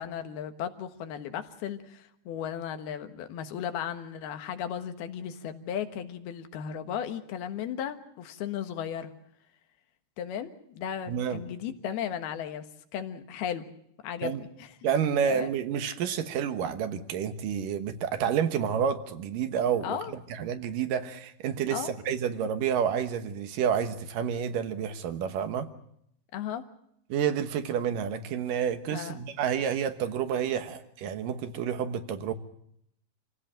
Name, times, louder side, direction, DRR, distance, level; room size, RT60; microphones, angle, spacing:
voice 1, 0.0-9.1 10.2-12.7 12.9-13.7 14.0-14.7 15.2-15.5 19.8-20.1 21.7-21.9 26.3-26.7 28.9-29.2, left 9 dB, 85° left, 3.4 m, -35 dB
voice 2, 11.1-11.4 14.2-14.4 14.8-20.0 20.3-25.7 27.1-32.3, right 8 dB, 70° right, 2.8 m, -29 dB
27.5 x 16.5 x 7.6 m
omnidirectional pair, 4.4 m